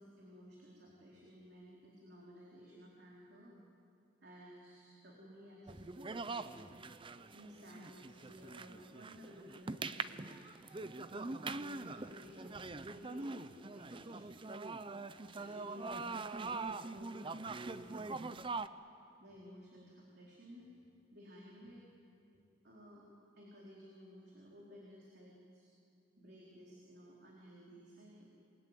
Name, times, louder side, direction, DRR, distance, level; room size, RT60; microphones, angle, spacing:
voice 1, 0.0-3.6 4.2-6.7 7.3-10.4 11.1-14.3 15.1-18.3 19.2-20.7 21.1-21.8 22.3-23.1 23.4-25.7 26.2-28.3, equal, 55° right, -4 dB, 4.2 m, -56 dB
sound 1, 5.7-18.7, right 3 dB, 25° right, 0.6 m, -43 dB
28.0 x 22.0 x 9.1 m, 2.5 s
head